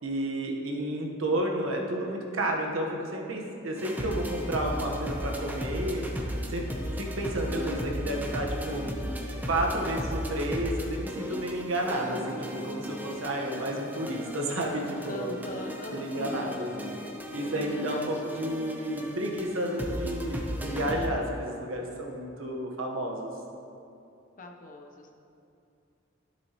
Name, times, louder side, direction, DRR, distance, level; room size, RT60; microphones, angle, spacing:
voice 1, 0.0-6.1 6.5-6.6 7.0-8.9 9.4-15.3 15.9-17.0 17.3-23.3, right 1 dB, 75° right, 0 dB, 1.2 m, -31 dB
sound 1, 3.8-21.1, equal, 10° right, 0.8 m, -36 dB
voice 2, 15.0-16.7 17.9-18.1 18.7-18.8 24.4-25.1, left 1 dB, 40° left, 3 dB, 0.8 m, -41 dB
12.0 x 7.5 x 3.0 m, 2.7 s
head